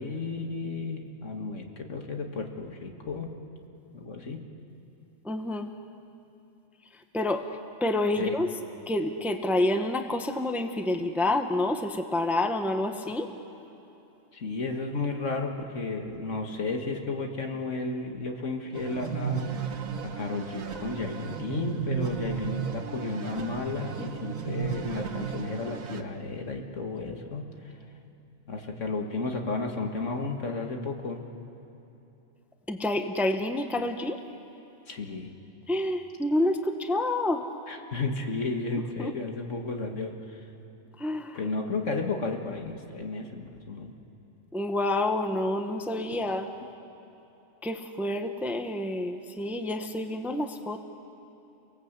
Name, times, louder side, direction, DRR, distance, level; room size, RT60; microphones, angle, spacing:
voice 1, 0.0-3.3 3.9-4.4 8.2-8.4 14.3-19.4 20.1-27.7 28.5-31.2 34.9-35.3 37.7-40.4 41.3-43.9, left 3 dB, 65° left, 3 dB, 2.1 m, -33 dB
voice 2, 5.2-5.7 7.1-7.4 7.8-8.5 8.9-13.3 32.7-34.2 35.7-37.4 39.0-39.1 41.0-41.4 44.5-46.5 47.6-50.8, left 1 dB, ahead, 6 dB, 0.9 m, -28 dB
sound 1, 18.7-26.0, right 6 dB, 85° right, 1.6 m, -34 dB
29.5 x 18.5 x 8.1 m, 3.0 s
omnidirectional pair, 1.4 m